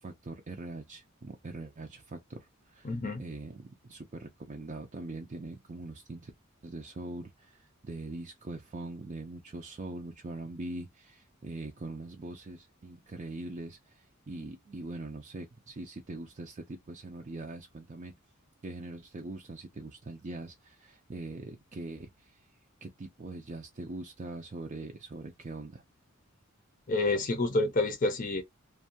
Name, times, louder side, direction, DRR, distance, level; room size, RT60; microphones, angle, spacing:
voice 1, 0.0-6.3 6.6-18.1 18.6-22.4 22.8-25.8, right 2 dB, 35° right, 0.4 m, -42 dB
voice 2, 2.8-3.2 26.9-28.4, left 2 dB, 40° left, 0.6 m, -28 dB
2.6 x 2.2 x 2.7 m
head